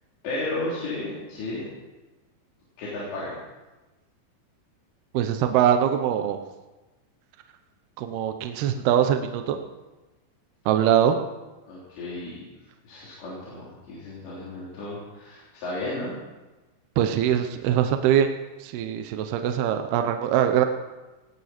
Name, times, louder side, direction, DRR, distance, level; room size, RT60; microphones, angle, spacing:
voice 1, 0.2-1.7 2.8-3.4 11.6-12.4 12.8-16.2, left 2 dB, 65° left, -7 dB, 5.7 m, -33 dB
voice 2, 5.1-6.4 8.0-9.6 10.7-11.2 17.0-18.3 18.6-20.7, right 9 dB, 75° right, 6 dB, 2.5 m, -22 dB
18.5 x 17.5 x 4.4 m, 1.1 s
omnidirectional pair, 5.3 m